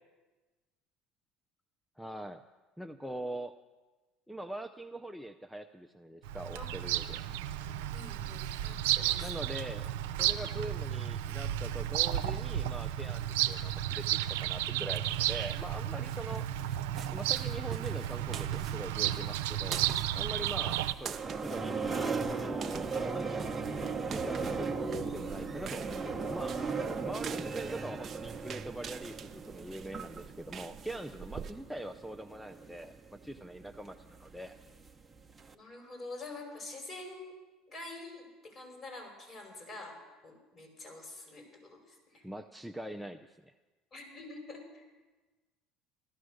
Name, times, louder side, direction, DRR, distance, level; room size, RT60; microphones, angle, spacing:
voice 1, 2.0-2.4 2.8-3.5 4.3-7.2 9.2-16.5 17.1-19.8 20.1-23.5 24.1-26.6 27.0-34.5 42.2-43.5, right 1 dB, ahead, 4 dB, 0.6 m, -43 dB
Bird vocalization bird call bird song, 6.2-20.9, right 12 dB, 85° right, 0.6 m, -33 dB
voice 2, 7.9-9.5 35.5-37.4 37.7-40.0 40.2-42.2 43.9-44.8, left 2 dB, 35° left, 2 dB, 5.2 m, -46 dB
flipflop footsteps, 15.0-31.5, right 7 dB, 40° right, 0.8 m, -46 dB
sound 1, 20.6-35.5, right 4 dB, 15° right, 1.1 m, -38 dB
15.0 x 13.0 x 6.5 m, 1.2 s
supercardioid pair, 90°, 0 cm